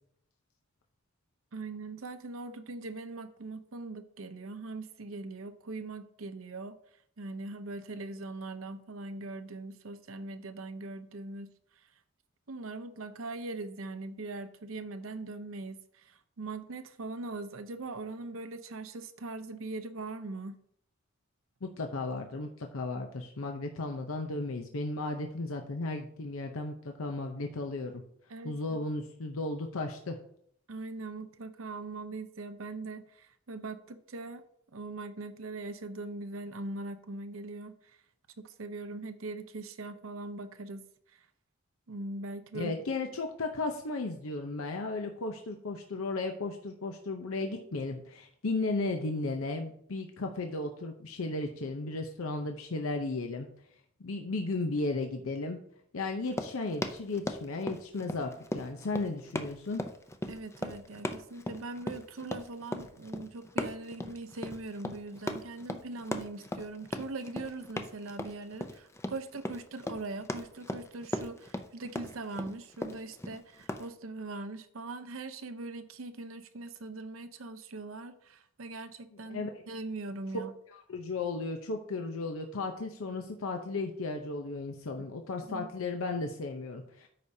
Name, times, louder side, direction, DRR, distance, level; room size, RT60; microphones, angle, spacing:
voice 1, 1.5-6.8 7.2-11.9 12.5-20.6 28.3-28.8 30.7-34.4 34.7-38.0 38.4-41.3 41.9-42.7 60.3-80.5 85.0-85.1 85.4-85.7, right 3 dB, 75° right, 10 dB, 0.7 m, -41 dB
voice 2, 21.6-28.0 28.4-30.2 42.5-53.5 54.0-55.6 55.9-59.8 79.3-79.5 80.9-87.1, left 3 dB, 85° left, 4 dB, 0.7 m, -35 dB
Run, 56.2-73.9, left 1 dB, 15° left, 0.5 m, -38 dB
13.0 x 5.0 x 2.7 m, 0.68 s
head